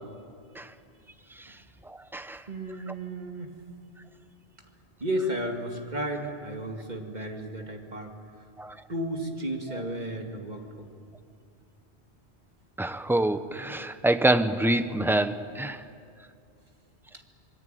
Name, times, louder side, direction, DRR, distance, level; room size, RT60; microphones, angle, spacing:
voice 1, 2.5-3.5 5.0-8.1 8.9-10.9, right 1 dB, 40° right, 3 dB, 2.6 m, -33 dB
voice 2, 12.8-15.8, right 1 dB, ahead, 10 dB, 0.7 m, -26 dB
26.5 x 21.0 x 9.3 m, 2.4 s
omnidirectional pair, 1.1 m